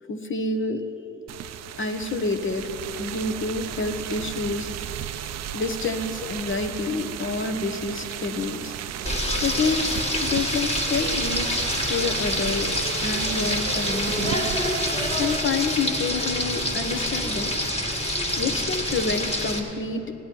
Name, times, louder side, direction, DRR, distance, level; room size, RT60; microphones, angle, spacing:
voice 1, 0.1-0.8 1.8-2.7 3.0-8.7 9.4-12.7 13.0-14.5 15.2-17.6 18.4-20.1, left 3 dB, 40° left, 7 dB, 1.2 m, -28 dB
sound 1, 1.3-15.4, right 10 dB, 60° right, 0.5 m, -34 dB
Frying (food), 9.0-19.6, left 1 dB, 20° left, 2.0 m, -26 dB
18.0 x 10.5 x 4.6 m, 2.9 s
cardioid pair, 90°, 30 cm